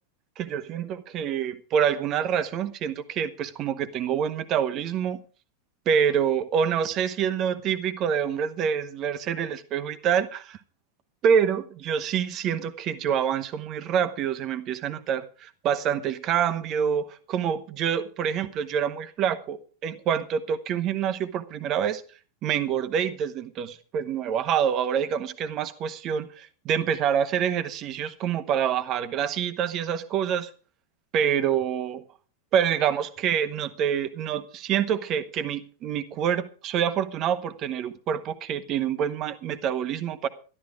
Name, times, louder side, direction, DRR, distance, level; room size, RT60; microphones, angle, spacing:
voice 1, 0.4-5.2 5.8-10.6 11.2-19.6 19.8-22.0 22.4-30.5 31.1-32.0 32.5-40.3, right 8 dB, 35° right, 11 dB, 1.3 m, -26 dB
12.5 x 12.5 x 5.0 m, 0.38 s
figure-of-eight pair, 90°, 0 cm